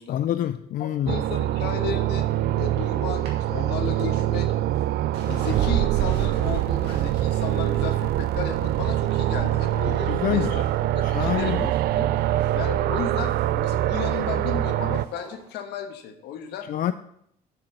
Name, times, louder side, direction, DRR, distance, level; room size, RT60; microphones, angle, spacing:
voice 1, 0.1-1.2 10.1-10.6 11.0-11.7 16.7-16.9, left 11 dB, 55° left, 0.4 m, -26 dB
voice 2, 0.8-4.5 5.2-12.1 12.5-16.7, left 8 dB, 80° left, 1.3 m, -34 dB
sound 1, 1.1-15.1, right 13 dB, 70° right, 0.4 m, -24 dB
sound 2, 2.8-10.0 10.3-10.8 11.0-15.5 15.8-15.9, right 3 dB, 85° right, 2.5 m, -45 dB
7.5 x 6.5 x 6.7 m
cardioid pair, 110°, 17 cm